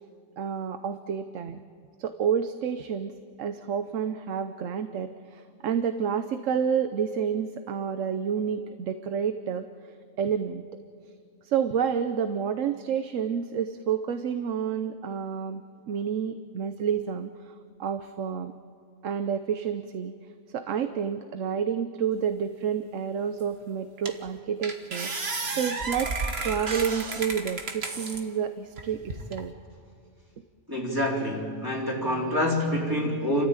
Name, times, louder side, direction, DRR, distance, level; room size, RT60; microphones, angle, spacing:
voice 1, 0.4-1.6 2.0-3.1 3.4-9.7 10.2-10.6 11.4-15.6 15.9-18.5 19.0-20.1 20.5-25.1 25.6-29.5, right 7 dB, 85° right, 10 dB, 1.1 m, -29 dB
sound 1, 23.4-23.5 24.1-24.3 24.6-28.2 28.8-29.4, right 3 dB, 55° right, 1.8 m, -32 dB
voice 2, 30.7-33.5, left 1 dB, 15° right, -3 dB, 3.8 m, -27 dB
30.0 x 14.0 x 8.9 m, 2.3 s
omnidirectional pair, 1.3 m